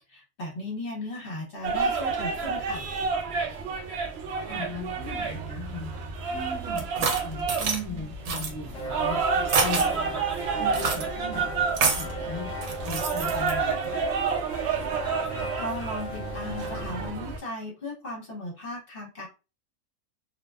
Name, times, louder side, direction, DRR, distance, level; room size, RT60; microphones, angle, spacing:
voice 1, 0.1-2.9 15.6-19.3, left 1 dB, 45° left, -3 dB, 1.0 m, -36 dB
sound 1, 1.6-17.4, right 5 dB, 65° right, 0.7 m, -30 dB
voice 2, 4.5-12.5 12.8-14.1, left 2 dB, 15° left, -5 dB, 1.1 m, -38 dB
sound 2, 6.8-7.8 8.3-8.5 9.5-9.9 10.7-11.0 11.7-12.1 12.6-13.5, right 5 dB, 80° right, 1.1 m, -27 dB
sound 3, 8.2-17.1, equal, 70° left, 0.3 m, -37 dB
2.5 x 2.1 x 2.3 m, 0.31 s
omnidirectional pair, 1.4 m